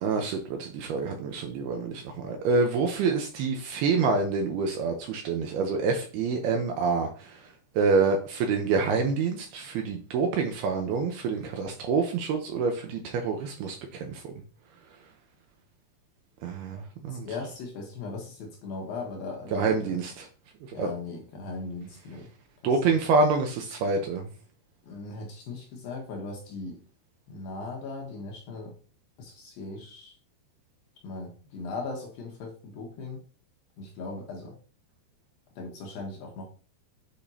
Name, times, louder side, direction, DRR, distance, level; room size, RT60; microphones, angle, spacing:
voice 1, 0.0-7.1 7.8-14.3 16.4-17.3 19.5-20.3 20.8-20.9 22.6-24.2, right 4 dB, 80° right, 4 dB, 2.4 m, -27 dB
voice 2, 16.7-20.0 20.7-22.3 22.6-23.0 24.8-26.8 27.3-28.8 29.2-30.2 31.0-33.2 33.8-34.6 35.6-36.5, left 3 dB, 65° left, 0 dB, 2.6 m, -38 dB
8.6 x 5.1 x 2.8 m, 0.40 s
omnidirectional pair, 5.2 m